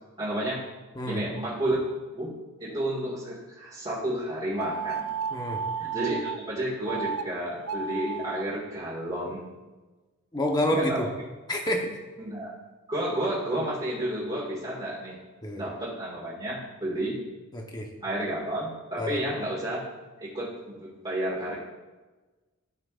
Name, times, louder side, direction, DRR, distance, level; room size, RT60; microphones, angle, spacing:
voice 1, 0.2-0.6 1.1-1.8 2.1-2.3 2.6-5.1 5.8-9.5 10.7-11.1 12.2-12.5 12.9-15.2 15.6-17.2 18.0-19.8 20.2-21.6, right 1 dB, 25° right, -8 dB, 2.0 m, -31 dB
sound 1, 4.6-6.4 6.8-7.2 7.6-8.4, right 6 dB, 75° right, 0.5 m, -32 dB
voice 2, 5.3-5.6 10.3-11.1 11.5-12.0 15.4-15.6 17.5-17.9 19.0-19.2, equal, 20° left, 2 dB, 1.0 m, -28 dB
13.5 x 5.9 x 2.5 m, 1.2 s
head